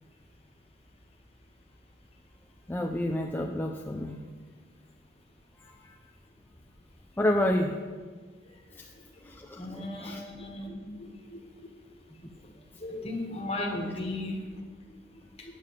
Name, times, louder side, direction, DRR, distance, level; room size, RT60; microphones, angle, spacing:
voice 1, 2.7-4.2 5.6-6.0 7.2-7.8 8.8-8.9 9.2-9.6 10.0-10.2, left 1 dB, 10° left, 2 dB, 0.4 m, -29 dB
voice 2, 8.9-11.7 12.3-12.5 12.8-15.6, left 2 dB, 30° left, 1 dB, 1.6 m, -37 dB
9.1 x 6.6 x 6.9 m, 1.5 s
head